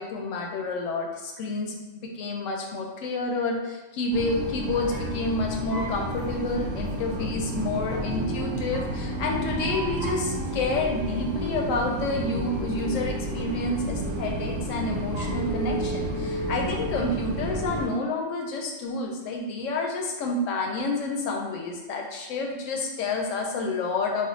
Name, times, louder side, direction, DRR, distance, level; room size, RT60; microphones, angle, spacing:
voice 1, 0.0-24.3, left 2 dB, 75° left, 1 dB, 0.9 m, -29 dB
sound 1, 4.1-17.9, right 1 dB, 65° right, 0.7 m, -31 dB
2.5 x 2.3 x 3.8 m, 1.2 s
omnidirectional pair, 1.4 m